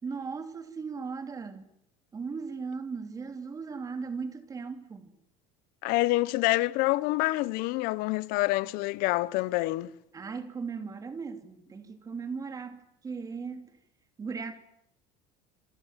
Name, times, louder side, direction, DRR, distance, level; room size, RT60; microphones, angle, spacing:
voice 1, 0.0-1.6 2.1-5.1 10.1-13.7 14.2-14.5, right 5 dB, 20° right, 3.2 m, -37 dB
voice 2, 5.8-9.9, left 19 dB, 60° left, 1.1 m, -27 dB
28.0 x 25.5 x 7.6 m
cardioid pair, 150°, 17 cm